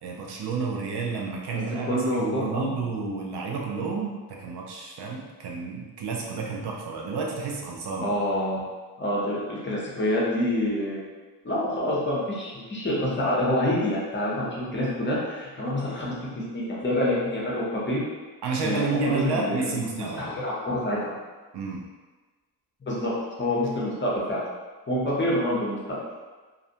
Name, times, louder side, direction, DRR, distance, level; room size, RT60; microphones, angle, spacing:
voice 1, 0.0-8.2 18.4-20.4 21.5-21.8, right 4 dB, 75° right, -1 dB, 0.6 m, -30 dB
voice 2, 1.9-2.7 8.0-8.6 9.0-11.0 11.4-16.1 16.5-18.0 18.6-21.1 22.9-23.1 23.4-24.4 24.9-26.0, left 1 dB, 30° left, -5 dB, 0.7 m, -27 dB
2.5 x 2.1 x 2.7 m, 1.3 s
cardioid pair, 115°, 40 cm